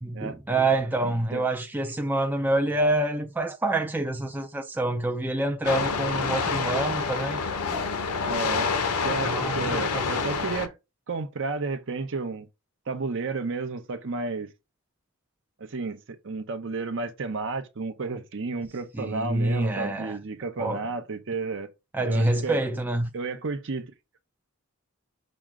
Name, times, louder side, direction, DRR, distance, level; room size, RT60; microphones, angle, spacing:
voice 1, 0.0-7.4 7.7-7.8 9.2-10.1 19.0-20.2 20.6-20.8 21.9-23.1, right 2 dB, 10° right, 0.3 m, -27 dB
voice 2, 1.0-1.4 8.2-8.7 9.0-10.8 11.1-12.5 12.9-14.5 15.6-21.7 22.0-22.6 23.1-23.9, right 4 dB, 60° right, 0.6 m, -32 dB
sound 1, 5.6-10.7, left 5 dB, 85° left, 0.6 m, -27 dB
6.0 x 2.1 x 3.6 m
head